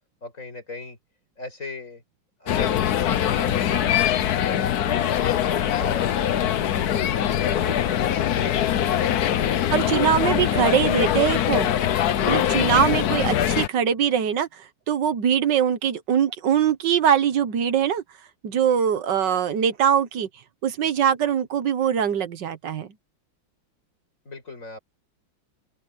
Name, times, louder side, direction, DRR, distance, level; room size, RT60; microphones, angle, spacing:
voice 1, 0.2-1.0 1.4-2.0 2.4-4.0 4.5-5.3 5.6-6.6 10.5-10.9 24.3-24.8, left 2 dB, 40° left, 5.7 m, -39 dB
sound 1, 2.5-13.7, left 10 dB, 60° left, 1.2 m, -22 dB
voice 2, 9.7-11.8 12.3-18.0 18.4-20.3 20.6-22.9, right 8 dB, 60° right, 1.7 m, -22 dB
open air
omnidirectional pair, 2.2 m